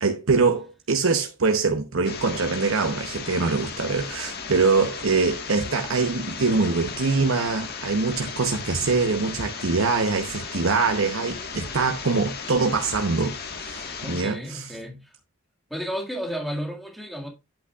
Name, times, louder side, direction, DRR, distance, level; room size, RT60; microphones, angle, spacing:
voice 1, 0.0-14.7, right 4 dB, 70° right, 0.9 m, -24 dB
sound 1, 2.0-14.2, left 5 dB, 50° left, 1.5 m, -36 dB
voice 2, 14.0-15.1 15.7-17.3, equal, ahead, 1.9 m, -32 dB
8.8 x 8.4 x 2.4 m
head